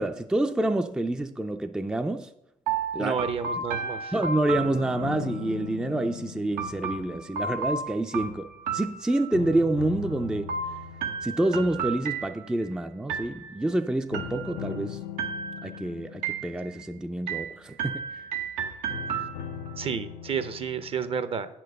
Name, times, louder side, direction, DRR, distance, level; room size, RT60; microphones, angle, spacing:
voice 1, 0.0-2.3 2.9-3.2 4.1-10.5 11.2-15.0 15.6-18.2, right 1 dB, 5° right, 0.4 m, -28 dB
sound 1, 2.7-5.4 6.6-9.6 10.5-12.7 13.1-13.7 14.1-14.8 15.2-15.8 16.2-16.9 17.3-19.7, right 5 dB, 85° right, 0.9 m, -33 dB
voice 2, 3.0-4.1 19.8-21.5, right 6 dB, 45° right, 0.7 m, -31 dB
sound 2, 4.6-8.9 9.3-12.6 14.1-18.1 18.9-21.1, left 8 dB, 85° left, 0.5 m, -40 dB
8.1 x 4.5 x 6.5 m
cardioid pair, 90°, 14 cm